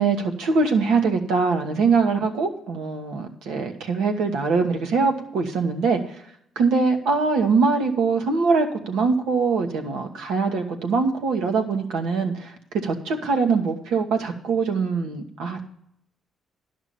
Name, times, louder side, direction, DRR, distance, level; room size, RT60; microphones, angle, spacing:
voice 1, 0.0-6.0 6.5-12.5 12.8-15.6, right 4 dB, 90° right, 4 dB, 1.3 m, -22 dB
11.5 x 5.9 x 7.0 m, 0.72 s
cardioid pair, 90°, 0 cm